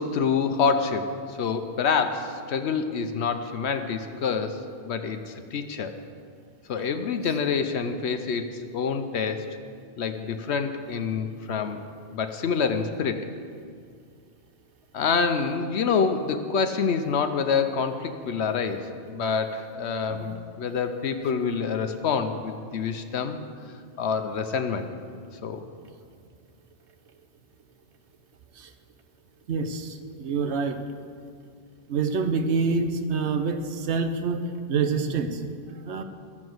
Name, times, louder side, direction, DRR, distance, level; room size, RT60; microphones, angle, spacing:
voice 1, 0.0-6.0 6.7-9.5 10.0-11.8 12.1-13.2 14.9-23.4 24.0-24.9 25.4-25.6, left 5 dB, 80° left, 7 dB, 1.0 m, -27 dB
voice 2, 29.5-30.8 31.9-34.4 34.7-35.4 35.8-36.0, right 4 dB, 85° right, 8 dB, 1.1 m, -26 dB
12.5 x 7.4 x 7.8 m, 2.2 s
omnidirectional pair, 1.1 m